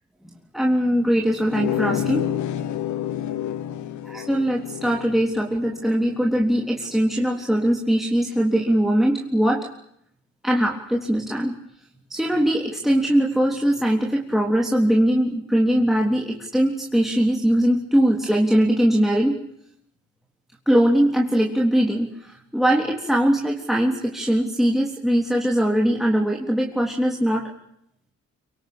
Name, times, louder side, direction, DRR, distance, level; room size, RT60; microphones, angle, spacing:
voice 1, 0.5-2.3 4.0-9.7 10.4-11.6 12.1-19.4 20.7-27.5, equal, ahead, -1 dB, 3.6 m, -21 dB
sound 1, 1.5-6.8, left 11 dB, 75° left, 1.5 m, -29 dB
25.0 x 24.0 x 8.8 m, 0.73 s
cardioid pair, 90°, 30 cm